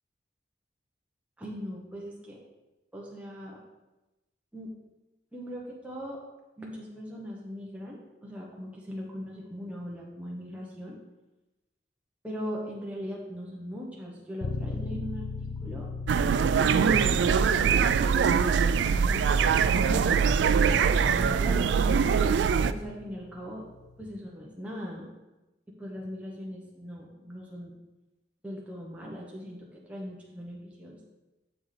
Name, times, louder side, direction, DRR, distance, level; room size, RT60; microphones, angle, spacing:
voice 1, 1.4-2.4 2.9-3.6 4.5-4.7 5.3-6.2 6.6-11.0 12.2-15.9 16.5-19.3 19.9-20.1 20.4-21.7 22.6-23.6 24.0-25.1 25.8-27.7 28.4-31.0, equal, 10° right, -4 dB, 1.0 m, -40 dB
sound 1, 14.4-24.1, left 3 dB, 65° left, 0.4 m, -40 dB
sound 2, 16.1-22.7, right 6 dB, 80° right, 0.3 m, -23 dB
7.4 x 6.2 x 3.3 m, 1.1 s
head